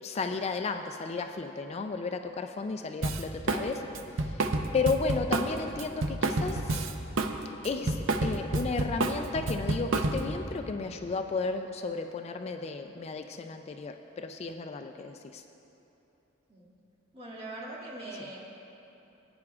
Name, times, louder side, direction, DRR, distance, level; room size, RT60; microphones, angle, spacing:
voice 1, 0.0-3.9 4.2-4.5 4.7-6.8 7.6-15.4, left 4 dB, 35° left, 6 dB, 0.3 m, -33 dB
Drum kit, 3.0-3.7 3.9-7.3 7.6-10.4, right 2 dB, 80° right, 0.6 m, -29 dB
voice 2, 17.1-18.5, right 1 dB, 30° right, -5 dB, 2.1 m, -42 dB
19.5 x 9.6 x 2.4 m, 3.0 s
head